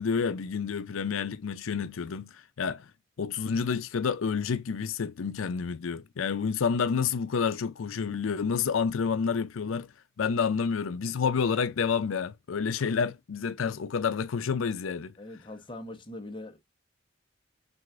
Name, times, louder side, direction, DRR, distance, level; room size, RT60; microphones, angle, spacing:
voice 1, 0.0-2.9 3.2-9.9 10.2-15.1, left 6 dB, 85° left, 0.5 m, -29 dB
voice 2, 15.2-16.6, left 1 dB, 25° left, 1.0 m, -42 dB
6.3 x 2.5 x 2.4 m
head